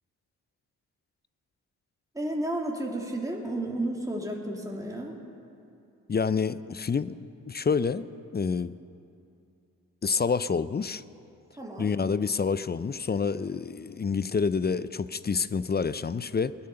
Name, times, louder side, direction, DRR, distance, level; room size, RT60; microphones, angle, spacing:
voice 1, 2.1-5.2 11.6-11.9, right 1 dB, 10° right, -1 dB, 2.8 m, -32 dB
voice 2, 6.1-7.2 7.5-8.7 10.0-11.0 11.8-16.5, left 5 dB, 25° left, 16 dB, 0.5 m, -28 dB
19.0 x 10.5 x 6.7 m, 2.6 s
hypercardioid pair, 40°, 39 cm